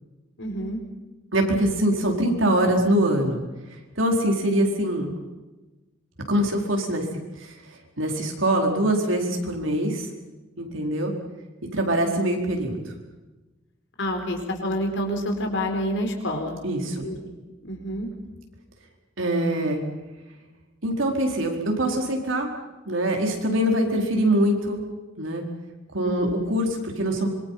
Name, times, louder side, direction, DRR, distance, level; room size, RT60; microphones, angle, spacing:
voice 1, 0.4-0.8 14.0-17.3 17.6-18.1 26.0-26.3, equal, 65° left, 3 dB, 4.6 m, -28 dB
voice 2, 1.3-3.4 4.0-5.1 6.3-7.0 7.4-7.5 8.0-10.1 10.6-11.1 11.7-12.9 16.6-17.0 19.2-19.8 20.8-22.5 22.9-24.8 25.2-25.4 25.9-27.3, right 1 dB, 75° right, 1 dB, 4.7 m, -23 dB
26.0 x 24.0 x 5.9 m, 1.1 s
head